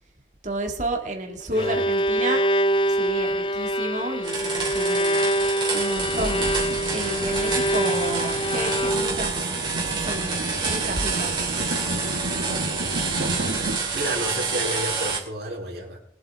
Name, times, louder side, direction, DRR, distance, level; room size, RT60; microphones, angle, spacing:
voice 1, 0.4-2.5 2.9-5.4 5.7-6.4 6.9-9.5 9.8-11.5, right 1 dB, 45° right, 2 dB, 2.1 m, -31 dB
Bowed string instrument, 1.3-9.3, equal, 30° left, 0.5 m, -25 dB
sound 1, 4.2-15.2, right 4 dB, 25° right, 3.1 m, -28 dB
sound 2, 6.0-13.8, right 2 dB, 85° right, 1.2 m, -32 dB
voice 2, 13.6-16.0, right 1 dB, 60° right, -1 dB, 3.8 m, -31 dB
23.0 x 8.0 x 3.6 m, 0.73 s
head